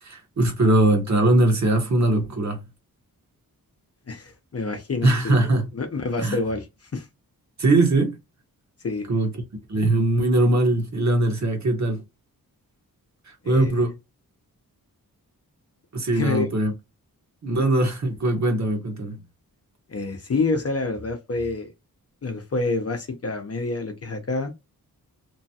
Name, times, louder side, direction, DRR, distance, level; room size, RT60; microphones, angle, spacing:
voice 1, 0.0-2.6 5.0-5.7 6.2-6.4 7.6-8.2 9.1-9.3 9.7-12.0 13.3-13.9 15.9-16.7 17.4-19.2, right 2 dB, 50° right, 1.1 m, -21 dB
voice 2, 4.1-5.5 5.7-7.1 8.8-9.1 13.4-13.8 16.1-16.5 19.9-21.7 22.2-24.5, left 3 dB, 40° left, 0.7 m, -27 dB
3.0 x 2.2 x 2.7 m
wide cardioid pair, 95°, 36 cm